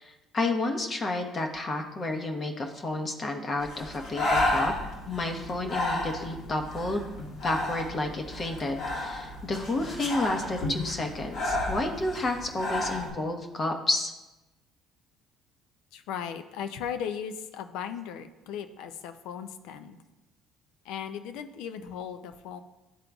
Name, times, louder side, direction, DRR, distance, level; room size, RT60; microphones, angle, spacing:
voice 1, 0.0-4.7 5.1-7.1 7.4-14.1, left 2 dB, 35° left, 4 dB, 0.9 m, -31 dB
Breathing, 3.6-13.1, left 1 dB, 65° left, 1.7 m, -32 dB
voice 2, 15.9-20.0 20.8-22.6, left 8 dB, 80° left, 9 dB, 0.4 m, -37 dB
11.0 x 3.7 x 2.3 m, 1.0 s
supercardioid pair, 90°, 0 cm